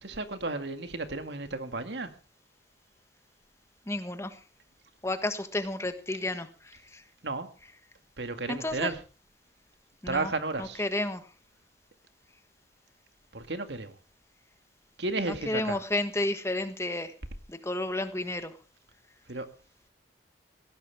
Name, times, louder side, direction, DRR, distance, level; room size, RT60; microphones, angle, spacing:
voice 1, 0.0-2.1 7.2-7.5 8.2-9.0 10.1-10.8 13.3-14.0 15.0-15.8 19.3-19.5, right 3 dB, 75° right, 2.0 m, -33 dB
voice 2, 3.9-4.3 5.0-7.0 8.5-8.9 10.0-10.3 10.6-11.2 15.3-17.1 17.5-18.5, left 2 dB, 15° left, 1.4 m, -31 dB
18.5 x 16.5 x 3.5 m
head